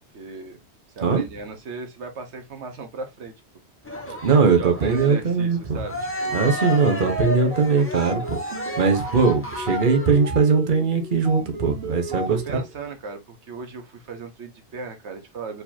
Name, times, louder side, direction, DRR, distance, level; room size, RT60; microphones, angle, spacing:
voice 1, 0.1-0.6 0.9-3.3 4.3-6.4 12.1-15.6, right 4 dB, 85° right, 1.4 m, -37 dB
Cheering, 3.8-10.3, left 1 dB, 10° left, 1.1 m, -32 dB
voice 2, 4.2-5.8 6.3-8.4 8.8-12.6, right 5 dB, 50° right, 1.2 m, -20 dB
sound 1, 6.9-12.7, right 2 dB, 65° right, 1.8 m, -34 dB
4.7 x 4.0 x 2.7 m
omnidirectional pair, 1.1 m